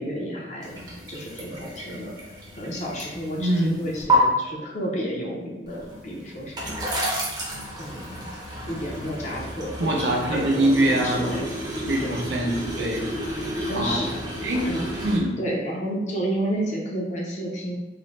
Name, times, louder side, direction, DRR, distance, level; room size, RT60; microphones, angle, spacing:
voice 1, 0.0-2.1 2.6-6.9 7.8-8.3 8.7-11.4 12.0-12.1 13.3-14.1 14.6-14.9 15.4-17.8, equal, 40° left, -2 dB, 0.5 m, -31 dB
sound 1, 0.6-4.2 5.7-15.2, right 1 dB, 25° right, 0.5 m, -31 dB
voice 2, 3.4-3.7 9.8-11.4 11.9-13.1 13.7-14.1 14.4-14.7 15.0-15.4, right 1 dB, 75° right, -1 dB, 0.5 m, -23 dB
2.5 x 2.0 x 3.1 m, 1.0 s
head